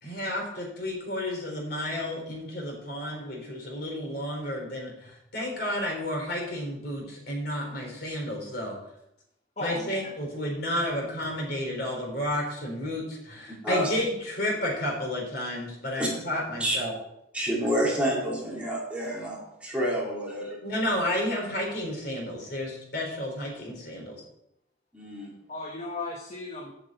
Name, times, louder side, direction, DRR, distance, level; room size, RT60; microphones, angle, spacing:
voice 1, 0.0-8.7 9.6-16.9 20.6-24.2, left 1 dB, 55° left, -1 dB, 3.9 m, -31 dB
voice 2, 9.6-10.1 25.5-26.7, left 2 dB, 35° left, 1 dB, 1.1 m, -35 dB
voice 3, 17.3-20.6 24.9-25.3, equal, 5° right, -5 dB, 2.7 m, -28 dB
8.4 x 6.1 x 7.8 m, 0.81 s
head